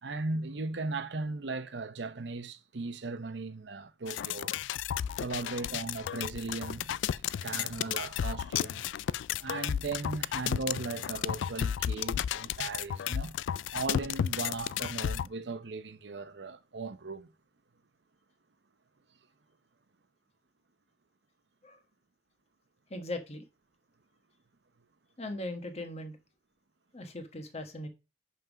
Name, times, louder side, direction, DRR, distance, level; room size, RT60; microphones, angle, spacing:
voice 1, 0.0-4.5 5.2-8.9 9.4-13.3 13.7-17.3, right 3 dB, 70° right, 0.8 m, -37 dB
sound 1, 4.1-15.3, left 9 dB, 85° left, 0.3 m, -33 dB
voice 2, 22.9-23.4 25.2-26.2 26.9-27.9, left 1 dB, 35° left, 1.2 m, -39 dB
5.6 x 5.4 x 6.0 m
head